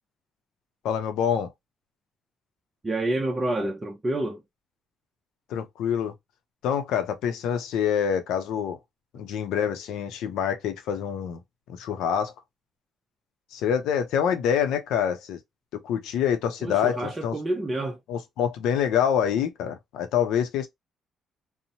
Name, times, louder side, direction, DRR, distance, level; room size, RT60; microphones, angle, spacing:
voice 1, 0.8-1.5 5.5-6.1 6.6-8.8 9.1-11.4 11.7-12.3 13.5-15.4 15.7-17.3 18.1-20.7, left 8 dB, 90° left, 0.5 m, -26 dB
voice 2, 2.8-4.4 16.6-18.0, right 1 dB, 25° right, 0.5 m, -28 dB
2.8 x 2.0 x 2.7 m
cardioid pair, 90°, 0 cm